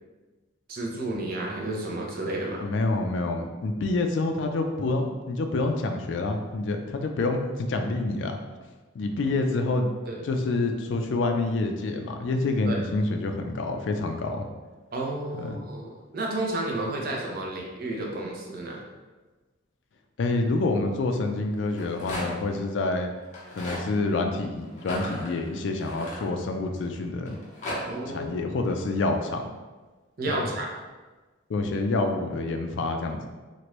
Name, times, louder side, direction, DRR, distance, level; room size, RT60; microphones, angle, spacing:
voice 1, 0.7-2.6 10.0-10.2 12.6-12.8 14.9-18.8 27.9-28.4 30.2-30.7, right 2 dB, 50° right, -1 dB, 0.6 m, -31 dB
voice 2, 2.6-8.4 8.9-9.9 10.2-14.5 15.3-15.6 20.2-23.1 23.5-27.4 28.1-29.5 30.3-30.5 31.5-33.3, left 2 dB, 70° left, 4 dB, 0.4 m, -27 dB
Rattle, 21.6-22.5 23.2-23.8 24.8-26.7 27.3-27.8, left 1 dB, 35° left, 0.8 m, -35 dB
3.0 x 2.5 x 3.0 m, 1.3 s
head